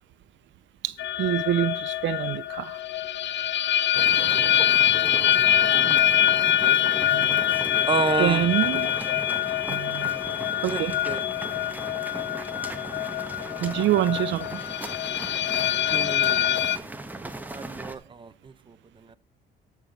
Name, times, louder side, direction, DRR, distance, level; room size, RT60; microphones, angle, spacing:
voice 1, 0.8-2.8 7.1-7.4 8.2-8.9 9.7-10.1 10.6-10.9 13.6-14.6, right 12 dB, 70° right, 0.5 m, -26 dB
sound 1, 1.0-16.8, left 11 dB, 65° left, 0.6 m, -24 dB
sound 2, 3.9-18.0, right 2 dB, 10° right, 1.3 m, -38 dB
voice 2, 6.4-6.8 7.9-8.5 10.7-11.3 15.9-16.6 17.1-19.2, right 5 dB, 25° right, 0.8 m, -31 dB
12.5 x 6.1 x 5.1 m
cardioid pair, 90°, 20 cm